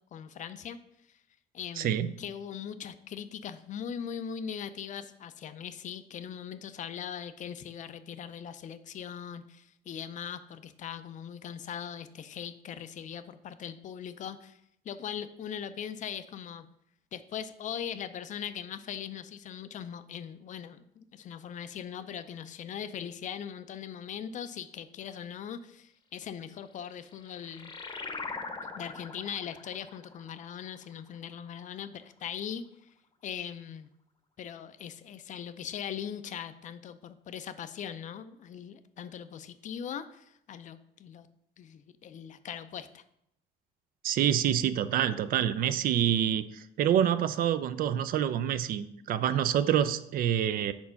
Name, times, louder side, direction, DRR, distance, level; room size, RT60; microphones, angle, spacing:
voice 1, 0.1-0.8 1.5-16.7 17.1-27.7 28.7-32.6 33.2-33.9 34.4-41.3 41.6-43.0, left 8 dB, 50° left, 12 dB, 0.4 m, -40 dB
voice 2, 1.8-2.1 44.0-50.7, right 10 dB, 60° right, 14 dB, 0.4 m, -27 dB
sound 1, 26.7-31.8, left 4 dB, 30° left, 0.8 m, -43 dB
4.4 x 4.1 x 5.7 m, 0.76 s
cardioid pair, 110°, 17 cm